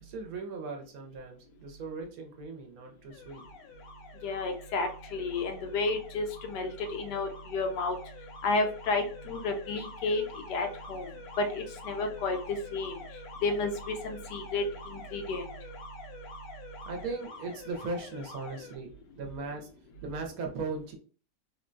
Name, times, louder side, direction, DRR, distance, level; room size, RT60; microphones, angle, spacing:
voice 1, 0.0-3.4 16.9-18.9 19.2-19.7 20.0-21.0, right 3 dB, 65° right, 2 dB, 1.0 m, -38 dB
Alarm, 3.1-18.8, left 4 dB, 70° left, 1.2 m, -47 dB
voice 2, 4.2-8.0 8.4-10.2 10.5-11.1 11.4-12.4 12.7-13.0 13.4-15.4, left 3 dB, 85° left, 4 dB, 1.3 m, -31 dB
3.5 x 2.2 x 2.5 m, 0.39 s
omnidirectional pair, 1.7 m